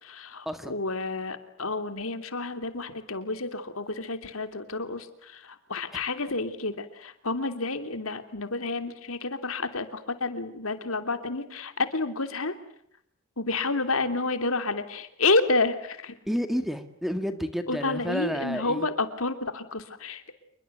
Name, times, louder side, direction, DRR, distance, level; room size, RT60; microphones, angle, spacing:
voice 1, 0.0-12.6 13.4-16.2 17.7-20.3, left 3 dB, 85° left, 9 dB, 3.1 m, -30 dB
voice 2, 16.3-18.9, equal, ahead, 9 dB, 1.9 m, -30 dB
28.5 x 22.5 x 8.1 m, 0.69 s
head